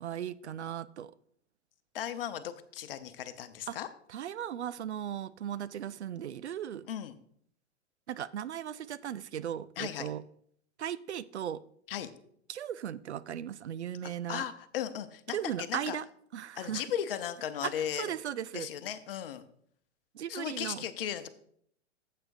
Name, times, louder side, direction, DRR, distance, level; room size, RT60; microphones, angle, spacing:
voice 1, 0.0-1.1 3.7-3.8 4.1-6.9 8.1-10.2 10.8-11.6 12.5-14.5 15.3-16.0 16.3-16.8 17.6-18.7 20.1-20.8, right 10 dB, 70° right, 16 dB, 0.5 m, -37 dB
voice 2, 1.9-3.9 6.9-7.2 9.8-10.1 11.9-12.1 14.0-16.0 16.5-18.1 18.5-19.4 20.3-21.3, left 10 dB, 50° left, 12 dB, 0.9 m, -36 dB
13.5 x 7.7 x 2.6 m, 0.66 s
figure-of-eight pair, 100°, 35 cm